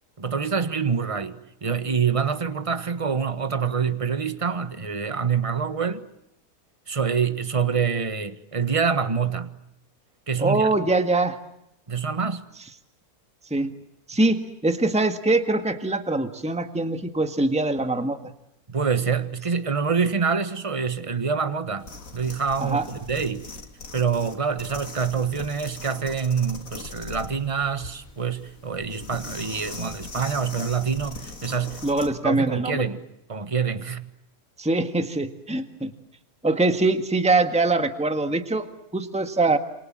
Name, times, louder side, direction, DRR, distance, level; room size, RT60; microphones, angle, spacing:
voice 1, 0.2-6.0 6.9-9.5 10.3-10.7 11.9-12.4 18.7-23.5 23.9-31.8 32.2-33.0 33.3-34.1, right 6 dB, 25° right, 1.5 m, -26 dB
voice 2, 10.4-11.4 13.5-13.7 14.1-18.2 22.6-22.9 31.8-32.9 34.6-35.9 36.4-38.7 38.9-39.6, right 2 dB, 5° right, 1.6 m, -23 dB
sound 1, 21.8-32.2, left 3 dB, 60° left, 3.0 m, -40 dB
28.5 x 27.0 x 7.5 m
omnidirectional pair, 1.6 m